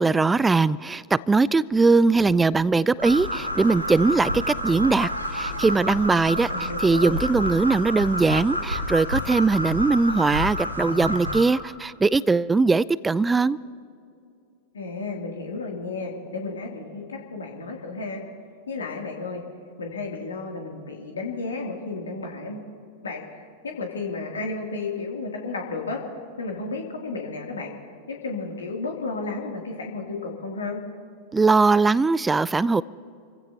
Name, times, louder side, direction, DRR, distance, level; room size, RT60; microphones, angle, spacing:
voice 1, 0.0-13.6 31.3-32.8, right 3 dB, 10° right, 21 dB, 0.3 m, -21 dB
sound 1, 3.0-11.4, equal, 85° right, 4.0 m, -29 dB
voice 2, 6.5-7.3 14.7-18.2 18.7-19.4 19.8-22.7 23.0-26.0 26.4-27.7 28.1-30.8, left 3 dB, 70° left, 0 dB, 2.7 m, -33 dB
29.0 x 15.5 x 2.8 m, 2.5 s
figure-of-eight pair, 90°, 0 cm